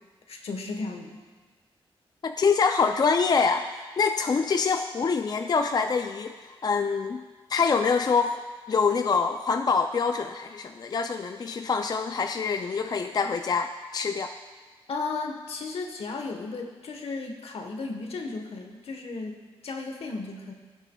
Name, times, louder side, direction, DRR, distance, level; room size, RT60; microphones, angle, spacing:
voice 1, 0.3-1.2 14.9-20.5, left 3 dB, 75° left, 3 dB, 1.1 m, -35 dB
voice 2, 2.2-7.2 7.5-8.4 8.7-14.3, left 5 dB, 40° left, 7 dB, 0.4 m, -25 dB
16.5 x 7.3 x 2.3 m, 1.4 s
cardioid pair, 90°, 10 cm